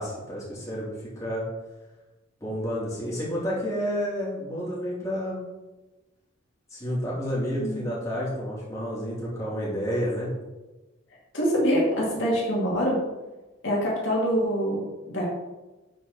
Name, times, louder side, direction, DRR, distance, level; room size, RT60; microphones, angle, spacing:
voice 1, 0.0-1.4 2.4-5.4 6.7-10.3, equal, 15° left, -7 dB, 3.1 m, -30 dB
voice 2, 11.3-13.0 13.6-15.2, equal, 65° left, -4 dB, 2.5 m, -25 dB
12.0 x 4.7 x 4.2 m, 1.1 s
head